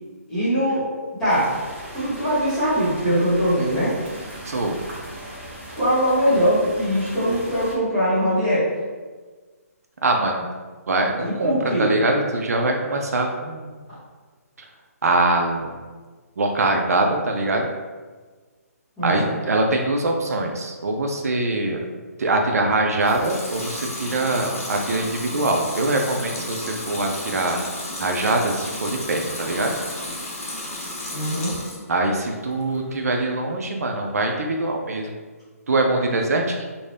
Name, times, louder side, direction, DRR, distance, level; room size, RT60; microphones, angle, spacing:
voice 1, 0.3-0.9 1.2-1.5 1.9-4.0 5.7-8.7 11.4-11.9 19.0-19.3 31.1-31.5, equal, 5° left, -16 dB, 0.9 m, -21 dB
Heavy Rain, 1.3-7.7, equal, 45° right, 0.7 m, -38 dB
voice 2, 4.5-4.8 10.0-10.5 10.9-13.7 14.6-14.7 15.0-15.8 16.4-17.7 19.0-21.8 22.2-27.6 28.0-29.8 31.9-35.1 35.7-36.6, right 2 dB, 70° right, 2 dB, 0.4 m, -23 dB
Water tap faucet / Sink (filling or washing) / Liquid, 22.9-31.9 32.3-33.0, left 1 dB, 55° left, 1.0 m, -33 dB
2.6 x 2.1 x 3.2 m, 1.4 s
hypercardioid pair, 175°, 9 cm